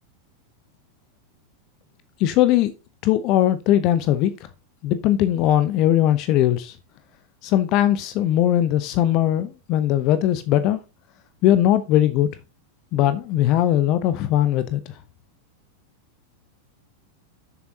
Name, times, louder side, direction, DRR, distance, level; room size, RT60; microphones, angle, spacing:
voice 1, 2.2-2.7 3.0-4.3 4.8-6.7 7.4-10.8 11.4-12.3 12.9-14.8, left 12 dB, 40° left, 0.8 m, -19 dB
10.5 x 7.0 x 3.9 m
figure-of-eight pair, 90°, 0 cm